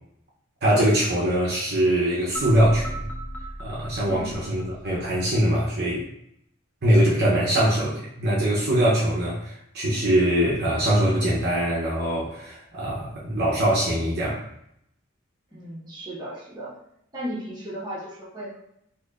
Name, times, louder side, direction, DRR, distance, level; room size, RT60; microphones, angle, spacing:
voice 1, 0.6-3.1 3.6-6.1 6.8-14.4, right 1 dB, 50° right, -6 dB, 0.7 m, -22 dB
sound 1, 2.3-5.4, right 1 dB, 10° left, 0.5 m, -36 dB
voice 2, 4.0-4.4 15.5-16.7 17.1-18.6, equal, 20° right, -7 dB, 1.1 m, -35 dB
4.1 x 2.9 x 2.4 m, 0.74 s
head